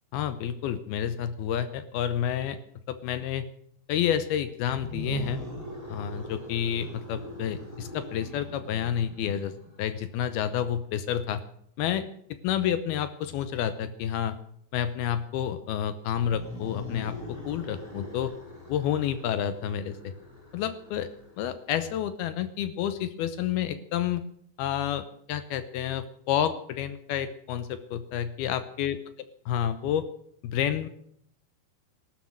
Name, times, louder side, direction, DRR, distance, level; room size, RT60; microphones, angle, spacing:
voice 1, 0.1-2.6 2.9-3.4 3.9-5.4 5.9-9.5 9.8-11.4 11.8-12.1 12.4-14.4 14.7-18.3 18.7-20.1 20.5-21.1 21.4-24.2 24.6-29.0 29.5-30.1 30.4-30.9, left 9 dB, 75° left, 12 dB, 2.5 m, -29 dB
sound 1, 4.7-9.8 16.1-21.7, equal, 10° left, 2.6 m, -41 dB
16.5 x 12.0 x 6.2 m, 0.69 s
omnidirectional pair, 5.0 m